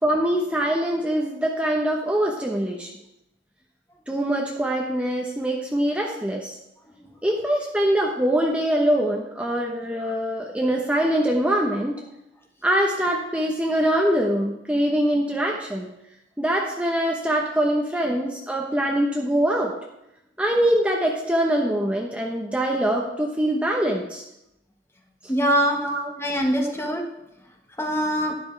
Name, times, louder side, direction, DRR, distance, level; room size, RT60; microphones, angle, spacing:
voice 1, 0.0-2.9 4.1-6.5 7.2-12.0 12.6-15.9 16.4-19.7 20.4-24.2 25.8-26.1 26.6-26.8, right 1 dB, 5° right, -1 dB, 0.9 m, -23 dB
voice 2, 25.3-25.8 26.2-27.0 27.8-28.3, equal, 15° left, 2 dB, 1.3 m, -23 dB
12.0 x 11.0 x 3.3 m, 0.88 s
head